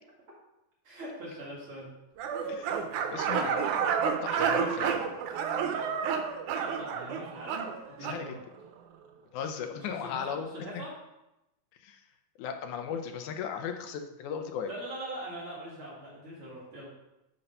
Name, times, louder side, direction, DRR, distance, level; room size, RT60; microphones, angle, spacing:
voice 1, 0.8-1.9 2.2-2.3 6.6-8.4 9.7-10.9 14.6-16.9, right 1 dB, 45° right, -6 dB, 3.3 m, -42 dB
sound 1, 2.2-8.2, right 7 dB, 85° right, 2.2 m, -30 dB
voice 2, 2.5-5.1 8.0-8.4 9.3-10.5 11.8-12.0 12.4-14.7, left 7 dB, 85° left, 6 dB, 2.2 m, -37 dB
11.0 x 4.0 x 5.4 m, 0.92 s
omnidirectional pair, 3.4 m